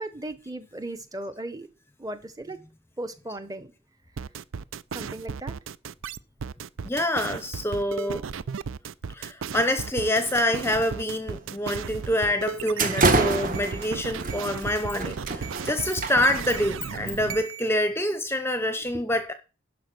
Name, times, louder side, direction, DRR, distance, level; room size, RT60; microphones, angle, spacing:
voice 1, 0.0-1.7 2.0-2.6 3.0-3.7 4.9-5.6 18.8-19.0, right 1 dB, 20° right, 1.1 m, -36 dB
sound 1, 4.2-17.7, right 6 dB, 75° right, 0.5 m, -35 dB
voice 2, 6.8-8.3 9.1-19.3, left 1 dB, 10° left, 0.7 m, -26 dB
sound 2, 10.4-10.8 11.2-11.4 12.0-12.1 12.5-16.7, right 3 dB, 40° right, 1.4 m, -27 dB
11.5 x 5.2 x 6.1 m
head